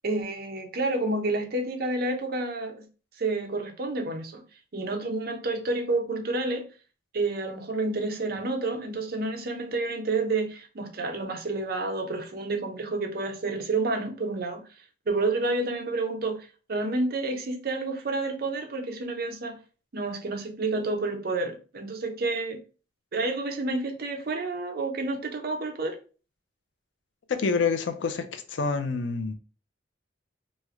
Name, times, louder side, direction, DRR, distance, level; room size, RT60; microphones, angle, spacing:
voice 1, 0.0-2.9 3.2-4.4 4.7-6.6 7.1-14.6 15.1-19.6 19.9-22.6 23.1-26.0, right 2 dB, 55° right, 0.6 m, -29 dB
voice 2, 27.3-29.3, left 4 dB, 70° left, 0.5 m, -27 dB
3.1 x 2.1 x 3.5 m
head